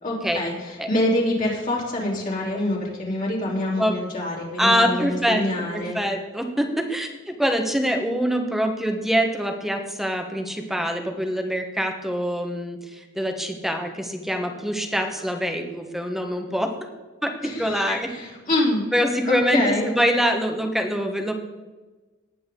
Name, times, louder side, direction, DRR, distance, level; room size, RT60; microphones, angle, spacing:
voice 1, 0.0-6.0 17.4-18.8 19.3-19.9, left 1 dB, 45° left, -4 dB, 3.6 m, -26 dB
voice 2, 4.6-5.4 5.7-16.7 17.2-18.1 18.9-19.6 19.9-21.3, equal, ahead, 4 dB, 1.3 m, -24 dB
19.0 x 8.7 x 3.9 m, 1.2 s
head